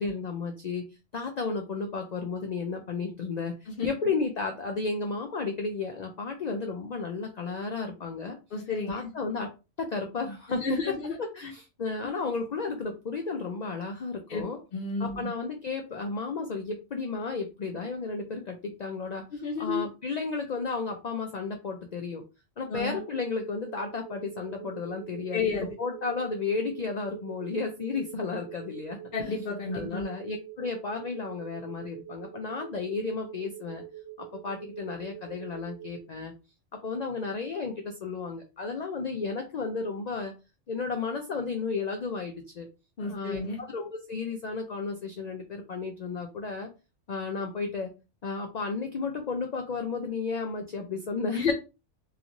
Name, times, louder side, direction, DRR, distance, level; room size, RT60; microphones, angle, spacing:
voice 1, 0.0-3.5 3.8-8.4 8.9-9.5 9.8-14.6 15.0-22.2 22.6-25.5 25.8-29.4 29.7-33.8 34.2-36.3 36.7-40.3 40.7-42.7 43.1-46.7 47.1-47.9 48.2-51.5, left 4 dB, 75° left, 4 dB, 0.3 m, -33 dB
voice 2, 8.5-9.1 10.5-11.2 11.4-11.5 14.3-14.4 14.7-15.3 19.3-19.9 22.7-23.0 25.3-25.7 29.1-30.0 43.0-43.6 51.3-51.5, left 4 dB, 55° left, -2 dB, 0.7 m, -31 dB
sound 1, 22.8-36.0, right 12 dB, 55° right, 0.7 m, -45 dB
2.9 x 2.4 x 2.6 m, 0.29 s
omnidirectional pair, 1.3 m